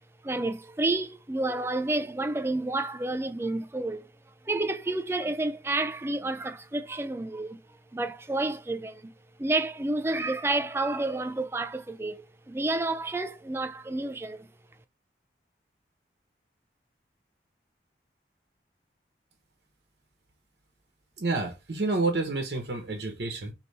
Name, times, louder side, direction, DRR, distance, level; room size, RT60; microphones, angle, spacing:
voice 1, 0.2-4.1 4.5-7.6 7.9-9.1 9.4-12.2 12.5-14.5, right 2 dB, 15° right, 0.3 m, -30 dB
voice 2, 21.2-23.5, right 3 dB, 75° right, 0.9 m, -29 dB
3.3 x 2.9 x 4.1 m
head